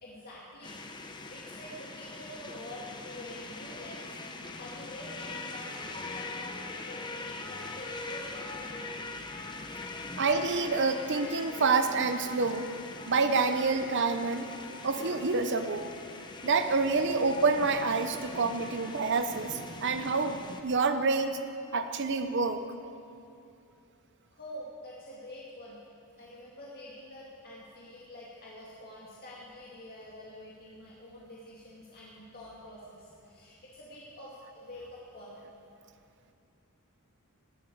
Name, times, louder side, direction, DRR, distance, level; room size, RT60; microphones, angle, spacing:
voice 1, 0.0-0.8 1.3-4.2 4.5-9.0 24.3-25.8 26.2-35.4, left 1 dB, 45° left, -5 dB, 2.2 m, -47 dB
sound 1, 0.6-20.6, left 3 dB, 20° left, 0.9 m, -42 dB
voice 2, 10.2-12.7 13.1-14.5 14.8-15.9 16.4-21.4 21.7-22.6, right 4 dB, 55° right, 8 dB, 0.8 m, -27 dB
19.0 x 8.5 x 8.6 m, 2.6 s
head